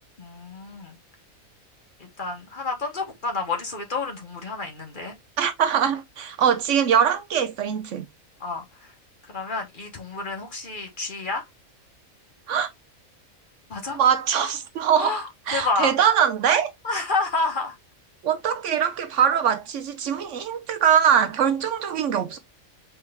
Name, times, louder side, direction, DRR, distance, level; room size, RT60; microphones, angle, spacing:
voice 1, 0.2-1.0 2.0-5.1 8.4-8.9 9.2-11.4 13.7-14.0 14.9-15.9 16.8-17.7, left 3 dB, 40° left, 1.0 m, -29 dB
voice 2, 5.4-8.1 12.5-12.7 13.9-15.1 15.5-16.7 18.2-22.4, right 8 dB, 65° right, 0.9 m, -22 dB
4.5 x 3.2 x 3.2 m
omnidirectional pair, 1.5 m